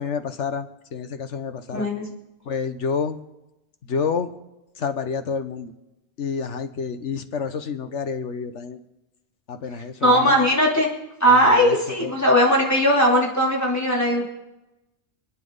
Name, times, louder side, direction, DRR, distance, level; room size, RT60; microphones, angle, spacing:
voice 1, 0.0-1.9 2.4-3.2 3.8-4.3 4.8-5.7 6.2-8.8 9.5-10.5 11.3-12.1, left 6 dB, 75° left, 9 dB, 1.4 m, -29 dB
voice 2, 1.7-2.0 10.0-10.9 11.2-14.3, equal, 15° left, -4 dB, 3.2 m, -18 dB
28.5 x 9.9 x 4.0 m, 0.96 s
omnidirectional pair, 1.2 m